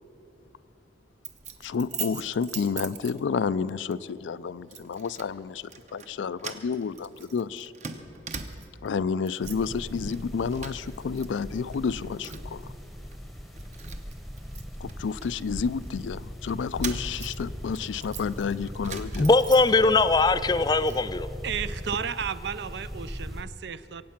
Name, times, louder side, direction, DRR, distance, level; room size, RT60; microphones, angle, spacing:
Keys jangling, 1.2-3.5 3.9-4.1 4.7-5.3 5.6-6.1 6.4-8.9 9.2-9.7 10.1-11.3 11.5-12.6 13.1-13.2 13.6-15.9 16.5-20.0 20.4-21.1, right 6 dB, 40° right, 0.8 m, -41 dB
voice 1, 1.6-5.6 5.9-7.7 8.8-12.6 14.8-19.3, left 5 dB, 90° left, 0.4 m, -30 dB
sound 1, 9.4-23.4, equal, ahead, 0.8 m, -39 dB
voice 2, 19.2-21.3, left 3 dB, 20° left, 0.3 m, -20 dB
voice 3, 21.4-24.0, right 7 dB, 70° right, 0.5 m, -33 dB
23.0 x 8.6 x 5.8 m
head